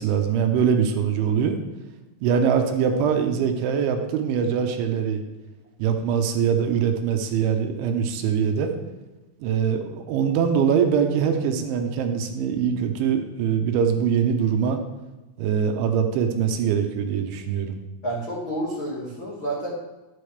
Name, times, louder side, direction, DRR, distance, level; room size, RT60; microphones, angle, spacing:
voice 1, 0.0-1.6 2.2-5.2 5.8-8.7 9.4-14.8 15.4-17.8, right 7 dB, 80° right, 5 dB, 3.3 m, -23 dB
voice 2, 18.0-19.7, right 1 dB, 70° left, -6 dB, 1.2 m, -29 dB
12.5 x 8.8 x 3.3 m, 1.1 s
omnidirectional pair, 5.5 m